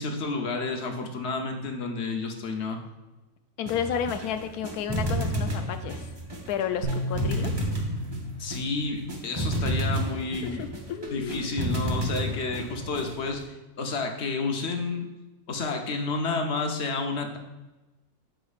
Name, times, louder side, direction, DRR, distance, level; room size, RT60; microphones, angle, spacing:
voice 1, 0.0-2.8 8.4-10.7 11.1-15.1 15.5-17.4, left 3 dB, 55° left, 3 dB, 1.0 m, -30 dB
voice 2, 3.6-6.0 6.5-7.5 10.4-11.5, left 8 dB, 85° left, 9 dB, 1.1 m, -32 dB
sound 1, 3.6-13.4, right 1 dB, 25° right, 0.7 m, -31 dB
sound 2, 6.8-10.1, equal, 90° right, 2.4 m, -34 dB
8.3 x 6.2 x 2.4 m, 1.1 s
omnidirectional pair, 1.6 m